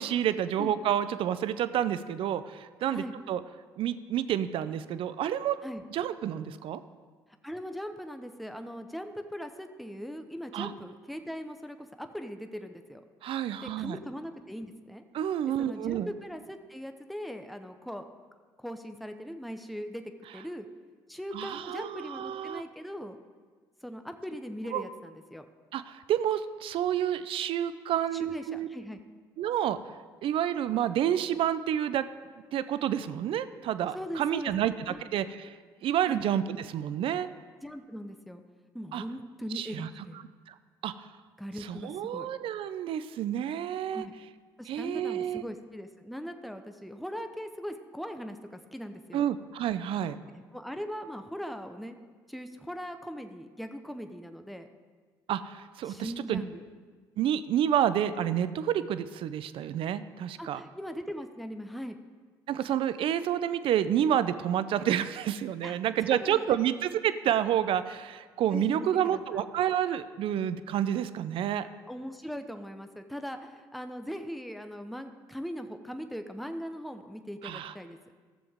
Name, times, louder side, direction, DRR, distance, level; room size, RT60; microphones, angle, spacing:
voice 1, 0.0-3.4 3.8-5.6 5.9-6.8 10.5-10.7 13.2-14.0 15.1-16.1 21.3-22.6 24.7-24.8 25.7-28.7 29.4-29.8 30.2-32.1 32.5-35.5 35.8-37.3 38.9-39.0 39.5-39.9 40.5-40.6 40.8-41.1 41.6-44.1 44.7-45.4 49.1-50.2 55.3-56.4 57.2-60.6 62.5-71.7 77.4-77.7, right 10 dB, 65° right, 13 dB, 0.5 m, -29 dB
voice 2, 7.4-13.0 13.6-15.0 15.6-18.0 18.6-20.0 20.3-20.7 21.1-23.2 23.8-25.5 28.1-29.0 33.9-34.5 34.9-35.0 36.0-36.2 37.6-38.4 38.7-40.2 41.4-42.3 43.9-44.1 44.6-49.2 50.5-52.0 52.3-54.7 55.8-56.6 60.4-62.0 65.6-66.6 68.5-69.4 71.9-78.0, equal, ahead, 7 dB, 0.7 m, -40 dB
13.5 x 7.0 x 3.6 m, 1.5 s
hypercardioid pair, 60°, 10 cm